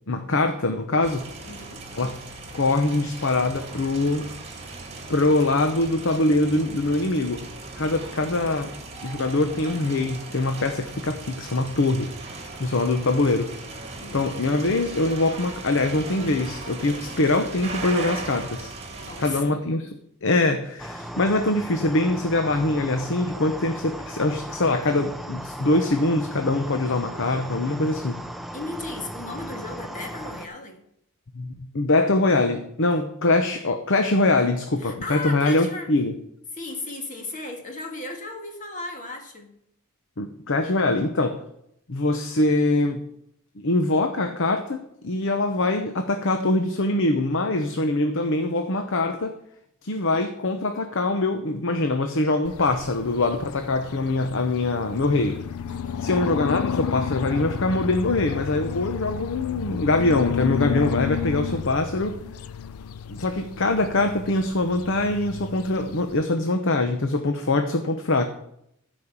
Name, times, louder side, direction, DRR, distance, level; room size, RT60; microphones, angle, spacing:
voice 1, 0.1-1.2 2.0-2.1 2.5-4.3 5.1-7.5 7.8-8.7 9.0-12.1 12.6-13.5 14.1-18.8 19.2-19.9 20.2-28.2 31.3-36.1 40.2-41.4 41.9-43.0 43.6-49.3 49.8-55.4 56.0-62.2 63.1-68.3, left 2 dB, 60° left, 7 dB, 0.9 m, -23 dB
sound 1, 1.0-19.4, right 3 dB, 30° right, 1.9 m, -38 dB
voice 2, 1.4-1.8 7.7-8.1 14.0-14.2 19.0-19.7 28.5-30.8 34.8-35.9 36.5-39.5 55.7-56.1, left 2 dB, 35° left, 3 dB, 1.8 m, -36 dB
sound 2, 20.8-30.5, right 1 dB, ahead, 0.5 m, -37 dB
sound 3, 52.4-66.2, left 7 dB, 75° left, 0.4 m, -32 dB
13.5 x 5.3 x 7.3 m, 0.75 s
head